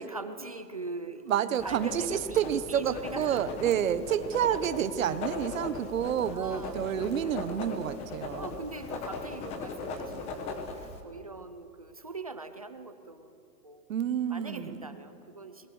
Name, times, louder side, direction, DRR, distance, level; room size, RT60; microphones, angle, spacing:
voice 1, 0.0-1.3 1.6-3.6 6.2-7.6 8.4-13.8 14.3-15.7, right 3 dB, 25° right, 9 dB, 0.4 m, -42 dB
voice 2, 1.3-8.5 13.9-14.9, right 9 dB, 50° right, 13 dB, 1.3 m, -29 dB
Writing, 1.6-11.0, left 3 dB, 15° left, 1.1 m, -39 dB
28.5 x 22.0 x 6.4 m, 2.8 s
hypercardioid pair, 165°, 49 cm